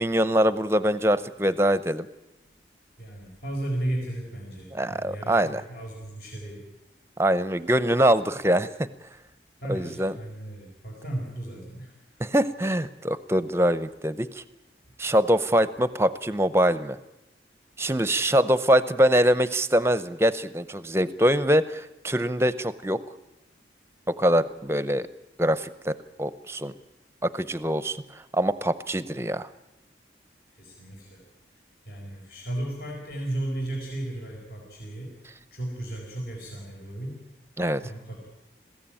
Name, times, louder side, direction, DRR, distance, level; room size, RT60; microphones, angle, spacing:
voice 1, 0.0-2.1 4.7-5.6 7.2-8.9 9.7-10.1 12.2-14.4 15.0-17.0 17.8-23.0 24.1-25.1 25.4-26.7 27.2-28.0 28.3-29.5 37.6-37.8, equal, 15° right, 14 dB, 0.7 m, -23 dB
voice 2, 3.0-6.6 9.6-11.9 30.6-31.2 31.9-35.1 35.5-37.2 37.8-38.3, right 1 dB, 60° left, -1 dB, 4.7 m, -34 dB
21.5 x 16.0 x 8.9 m, 0.95 s
head